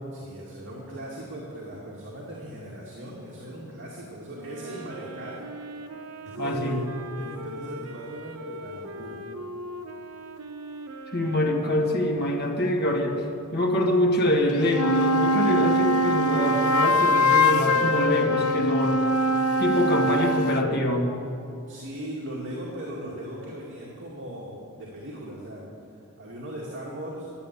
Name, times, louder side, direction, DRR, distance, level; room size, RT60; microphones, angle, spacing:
voice 1, 0.1-5.4 6.2-6.8 7.2-9.2 21.7-25.6 26.2-27.3, right 1 dB, 60° right, -5 dB, 2.3 m, -38 dB
Wind instrument woodwind instrument, 4.3-12.7, right 1 dB, 80° right, 0.9 m, -40 dB
voice 2, 6.4-6.8 7.2-7.3 11.1-13.3 13.5-19.0 19.6-21.1, left 1 dB, 50° left, 1 dB, 1.8 m, -25 dB
sound 1, 14.5-20.7, left 1 dB, 85° left, 0.6 m, -22 dB
12.5 x 9.1 x 8.3 m, 2.7 s
head